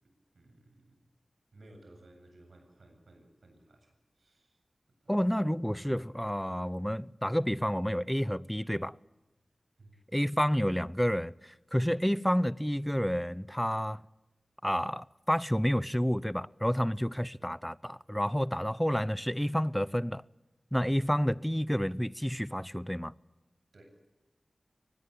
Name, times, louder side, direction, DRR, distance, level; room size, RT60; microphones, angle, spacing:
voice 1, 0.0-1.1 1.5-4.6 5.0-5.2 9.8-10.0 23.7-24.0, right 1 dB, 85° right, 7.9 m, -58 dB
voice 2, 5.1-9.0 10.1-14.0 14.6-20.2 20.7-23.1, equal, 5° left, 0.7 m, -30 dB
24.5 x 20.5 x 8.7 m
wide cardioid pair, 55°, 0 cm